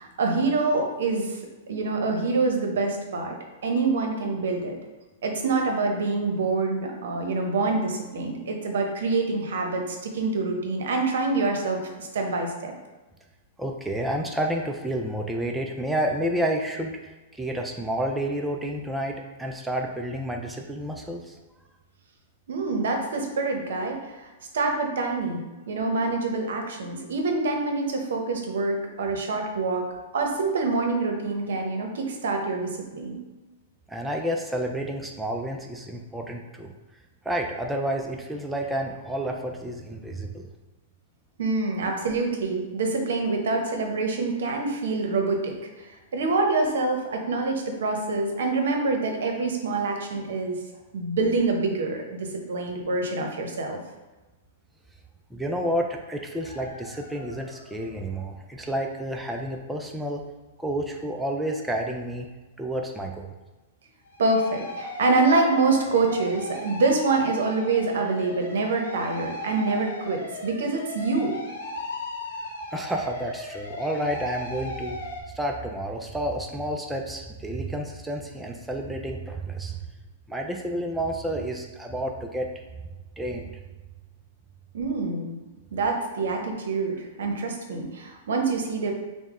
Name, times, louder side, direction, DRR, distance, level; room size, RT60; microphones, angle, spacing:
voice 1, 0.0-1.4 1.7-3.4 3.6-4.8 5.2-12.7 22.5-24.3 24.5-29.9 30.1-33.2 41.4-50.6 50.9-53.8 64.2-71.4 84.7-85.4 85.7-88.9, right 3 dB, 80° right, 3 dB, 0.8 m, -26 dB
voice 2, 13.6-21.4 33.9-36.7 37.2-40.5 55.3-60.2 60.6-62.3 62.6-63.3 72.7-75.0 75.3-79.8 80.3-82.5 83.2-83.5, right 1 dB, 5° right, 1 dB, 0.3 m, -30 dB
sound 1, 56.4-57.9 64.0-75.2, left 2 dB, 90° left, 1.1 m, -37 dB
5.3 x 2.1 x 3.6 m, 1.2 s
hypercardioid pair, 150°, 0 cm